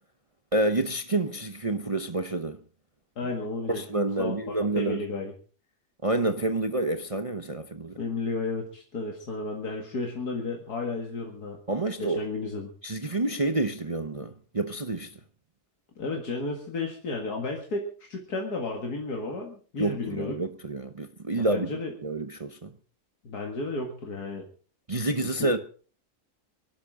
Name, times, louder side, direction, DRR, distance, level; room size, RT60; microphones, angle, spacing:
voice 1, 0.5-2.6 3.7-5.0 6.0-8.0 11.7-12.2 12.8-15.1 19.8-22.7 24.9-25.6, right 2 dB, 30° right, 0.8 m, -28 dB
voice 2, 3.2-5.3 8.0-11.6 12.0-12.7 16.0-20.3 21.4-21.9 23.2-24.5 25.2-25.5, left 3 dB, 80° left, 2.6 m, -33 dB
25.5 x 12.0 x 3.8 m
omnidirectional pair, 1.6 m